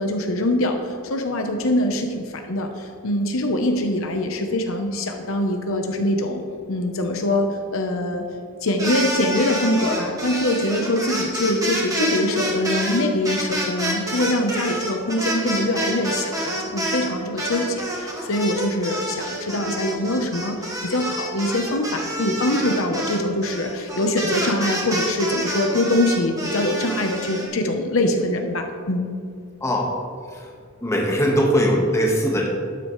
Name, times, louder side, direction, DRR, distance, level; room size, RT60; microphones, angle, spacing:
voice 1, 0.0-6.4 6.7-8.2 8.6-29.1, left 1 dB, 65° left, 4 dB, 0.9 m, -23 dB
sound 1, 8.7-17.1 17.4-27.5, right 1 dB, 15° right, 1.9 m, -28 dB
voice 2, 29.6-29.9 30.3-30.5 30.8-32.5, equal, 15° left, -1 dB, 1.4 m, -20 dB
12.0 x 9.6 x 3.2 m, 2.3 s
head